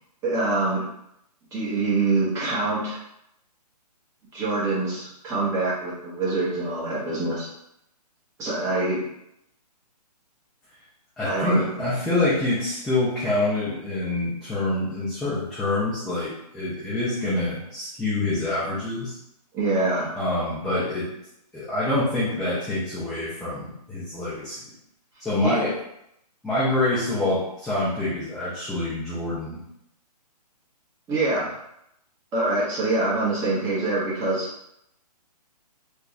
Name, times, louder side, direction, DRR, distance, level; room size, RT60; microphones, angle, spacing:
voice 1, 0.2-0.8 1.5-3.0 4.3-7.5 8.4-9.0 11.2-11.7 19.5-20.1 25.4-25.5 31.1-31.5 32.3-34.5, right 2 dB, 15° right, -7 dB, 1.0 m, -25 dB
voice 2, 11.2-19.1 20.2-21.1 21.5-24.6 25.2-25.8 26.4-29.6, left 2 dB, ahead, -12 dB, 0.3 m, -26 dB
3.4 x 2.3 x 3.1 m, 0.78 s
hypercardioid pair, 145°, 21 cm